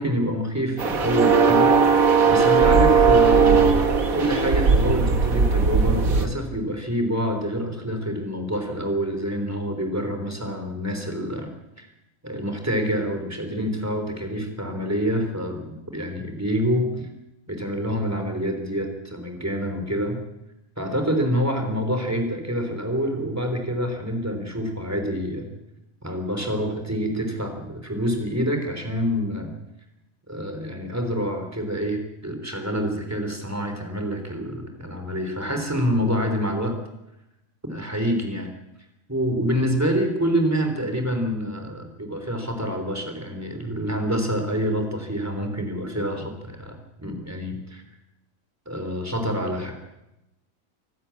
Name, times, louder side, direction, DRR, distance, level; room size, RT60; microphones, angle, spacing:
voice 1, 0.0-1.7 2.3-3.6 4.1-11.5 11.8-11.9 12.2-17.1 17.5-20.2 20.8-25.5 26.0-29.5 30.3-36.8 37.6-38.5 39.1-47.8 48.7-49.7, equal, 10° right, 5 dB, 3.8 m, -27 dB
sound 1, 0.8-6.3, right 5 dB, 90° right, 2.2 m, -18 dB
26.0 x 12.5 x 8.5 m, 0.93 s
omnidirectional pair, 1.4 m